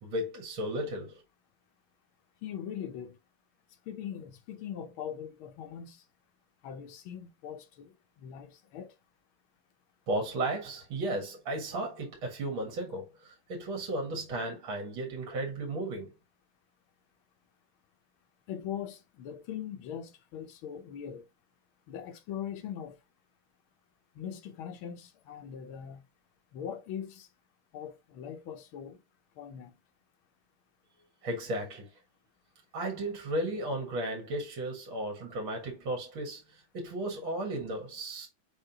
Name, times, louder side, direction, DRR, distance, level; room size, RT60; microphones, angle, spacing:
voice 1, 0.0-1.2 10.1-16.1 31.2-31.9 32.7-38.3, right 1 dB, 65° right, 2.5 m, -34 dB
voice 2, 2.4-3.2 3.9-6.0 6.6-8.9 18.5-21.3 21.9-23.0 24.1-26.0 26.5-27.3 27.7-29.0 29.4-29.8, left 9 dB, 75° left, 1.6 m, -41 dB
5.3 x 3.6 x 2.8 m
omnidirectional pair, 2.3 m